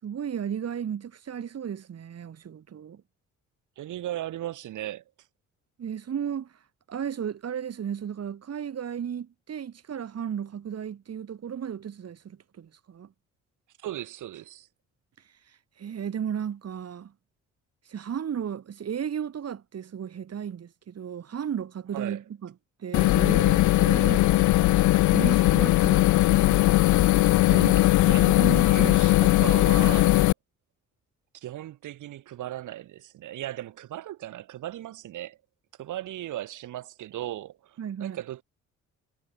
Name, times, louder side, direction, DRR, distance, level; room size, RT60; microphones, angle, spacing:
voice 1, 0.0-3.0 5.8-6.5 6.9-13.1 15.5-17.1 17.9-22.5 22.8-24.7 25.1-26.6 27.5-29.0 37.8-38.2, right 8 dB, 55° right, 6.2 m, -34 dB
voice 2, 3.8-5.0 13.8-14.7 21.9-22.2 28.0-30.3 31.3-35.4 35.8-38.4, right 13 dB, 80° right, 7.0 m, -37 dB
sound 1, 22.9-30.3, left 16 dB, 75° left, 0.6 m, -19 dB
cardioid pair, 90°, 30 cm